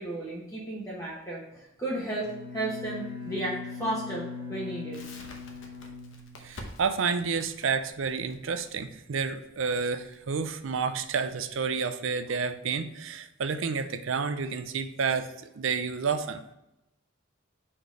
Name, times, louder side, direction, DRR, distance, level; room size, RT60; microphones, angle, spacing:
voice 1, 0.0-5.0, right 1 dB, 15° left, -6 dB, 1.1 m, -34 dB
Bowed string instrument, 2.1-6.9, left 4 dB, 25° right, 1.4 m, -40 dB
Crackle, 4.9-11.7, left 2 dB, 65° left, 1.0 m, -49 dB
voice 2, 6.4-16.5, right 5 dB, 70° right, 9 dB, 0.5 m, -30 dB
5.0 x 4.3 x 4.9 m, 0.88 s
head